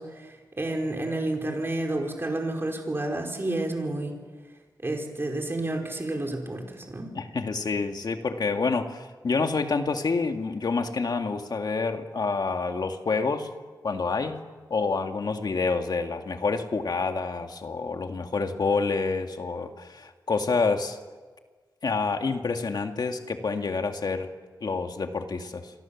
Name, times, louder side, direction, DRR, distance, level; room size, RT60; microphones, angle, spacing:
voice 1, 0.0-4.2 4.8-7.1, right 2 dB, 30° right, 2 dB, 5.0 m, -30 dB
voice 2, 7.1-13.5 13.8-14.4 14.7-21.0 21.8-24.3 24.6-25.7, left 4 dB, 60° left, 5 dB, 2.2 m, -28 dB
28.5 x 24.0 x 7.3 m, 1.4 s
wide cardioid pair, 115°, 8 cm